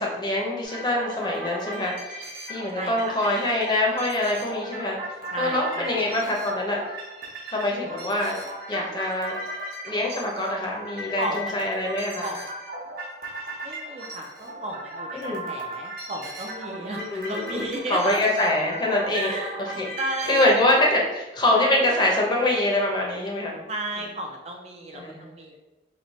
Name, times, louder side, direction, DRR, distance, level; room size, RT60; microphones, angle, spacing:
voice 1, 0.0-2.2 2.5-5.0 5.4-6.8 7.5-8.4 8.7-9.4 9.8-12.3 15.1-15.5 17.0-19.9 20.2-23.6 23.9-24.1 24.9-25.3, left 1 dB, 25° left, -1 dB, 0.7 m, -24 dB
sound 1, 0.6-20.6, right 1 dB, 50° right, 1.0 m, -37 dB
voice 2, 2.7-3.2 5.3-6.0 11.2-11.7 12.2-12.4 13.6-18.2 19.1-19.6 20.0-20.7 23.7-25.6, right 1 dB, 35° right, 1 dB, 0.4 m, -33 dB
3.2 x 2.8 x 4.1 m, 1.1 s
head